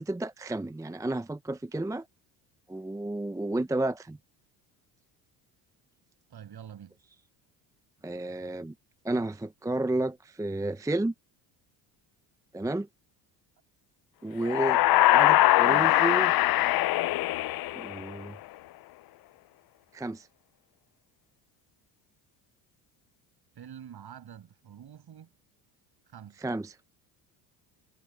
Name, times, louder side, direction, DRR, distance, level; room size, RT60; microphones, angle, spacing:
voice 1, 0.0-2.1 2.7-4.2 8.0-8.7 9.0-11.1 12.5-12.9 14.2-14.8 15.1-16.3 17.7-18.4 19.9-20.3 26.4-26.7, right 2 dB, 5° right, 0.7 m, -31 dB
voice 2, 6.3-7.0 23.6-25.3 26.1-26.4, right 9 dB, 50° right, 6.9 m, -46 dB
sound 1, 14.4-18.3, left 17 dB, 50° left, 0.6 m, -22 dB
hypercardioid pair, 70°, 49 cm